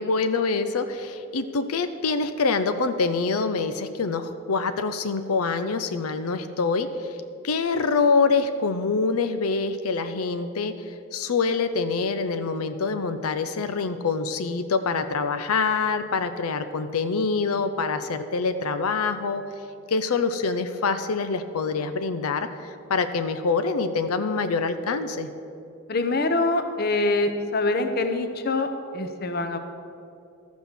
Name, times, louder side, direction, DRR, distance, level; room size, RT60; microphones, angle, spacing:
voice 1, 0.0-7.2 7.4-19.4 19.9-25.3, left 4 dB, 85° left, 9 dB, 0.6 m, -25 dB
voice 2, 25.9-29.6, left 2 dB, 45° left, 8 dB, 0.8 m, -25 dB
13.5 x 6.1 x 7.0 m, 2.6 s
head